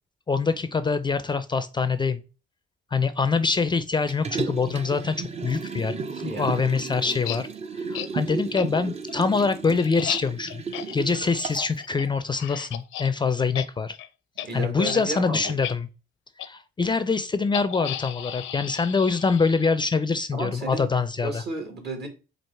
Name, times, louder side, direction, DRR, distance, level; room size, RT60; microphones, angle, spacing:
voice 1, 0.3-2.2 2.9-5.2 5.4-7.5 7.8-10.6 10.9-14.0 14.5-15.9 16.4-21.4, left 4 dB, 25° left, 12 dB, 0.4 m, -25 dB
Liquid, 4.1-11.8 12.2-12.3, right 5 dB, 30° right, 0.6 m, -34 dB
voice 2, 6.2-6.6 14.4-15.5 20.3-20.9 21.2-22.1, right 2 dB, 55° right, 4 dB, 1.8 m, -33 dB
sound 1, 7.0-7.4 7.9-8.1 8.6-8.7 9.1-13.1 13.4-13.7 13.9-14.1 14.4-14.5 14.8-15.0 15.4-15.7 16.4-16.5 17.5-19.9, left 11 dB, 80° left, 0.5 m, -34 dB
4.6 x 2.5 x 4.5 m, 0.32 s
cardioid pair, 90°, 20 cm